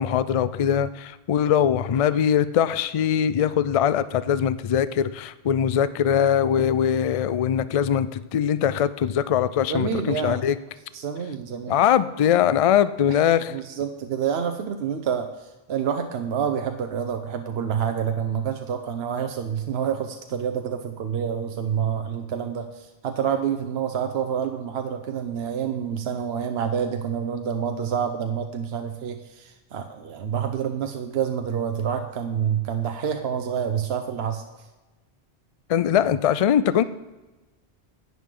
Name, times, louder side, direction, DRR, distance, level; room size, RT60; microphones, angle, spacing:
voice 1, 0.0-10.6 11.7-13.6 35.7-36.8, left 9 dB, 55° left, 14 dB, 0.4 m, -21 dB
voice 2, 9.7-10.4 10.9-11.8 13.5-34.4, right 8 dB, 70° right, 6 dB, 1.0 m, -28 dB
11.0 x 9.3 x 3.7 m, 1.1 s
omnidirectional pair, 1.1 m